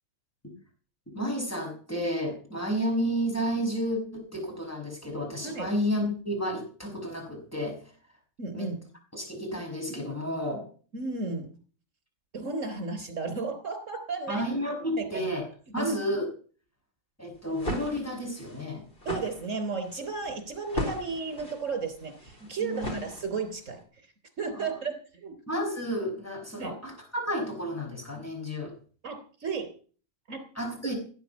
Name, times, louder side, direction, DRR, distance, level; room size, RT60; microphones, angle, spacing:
voice 1, 1.1-7.8 8.5-8.7 9.1-10.6 14.3-15.4 15.7-16.3 17.2-18.8 22.6-23.0 24.5-24.8 25.5-28.7 30.5-30.9, equal, 10° left, 1 dB, 6.1 m, -31 dB
voice 2, 8.4-8.8 10.9-11.5 12.3-14.5 15.0-15.3 15.8-15.9 19.1-23.8 24.4-24.9 25.2-25.3 26.6-26.7 29.0-29.7 30.3-30.4, right 4 dB, 70° right, 7 dB, 4.0 m, -33 dB
sound 1, 17.3-23.6, left 1 dB, 45° left, 4.6 m, -37 dB
17.5 x 9.3 x 7.2 m, 0.42 s
omnidirectional pair, 1.3 m